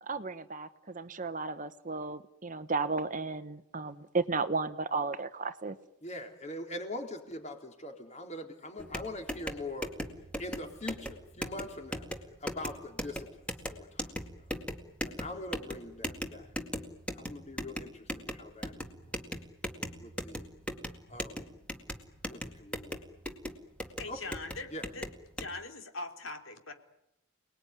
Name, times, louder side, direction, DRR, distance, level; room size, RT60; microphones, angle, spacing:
voice 1, 0.0-5.8, right 4 dB, 40° right, 12 dB, 1.1 m, -34 dB
voice 2, 6.0-9.9 10.4-12.1 12.4-13.3 13.8-14.0 15.1-16.5 17.2-18.0 18.3-18.9 19.8-20.4 21.1-21.5 22.3-22.9 24.1-24.2 24.7-24.8, left 1 dB, 35° left, 4 dB, 3.9 m, -42 dB
sound 1, 8.8-25.5, equal, 5° left, 2.2 m, -40 dB
voice 3, 24.0-25.1 25.4-26.7, left 3 dB, 75° left, 5 dB, 3.3 m, -41 dB
29.0 x 20.0 x 9.7 m, 0.84 s
head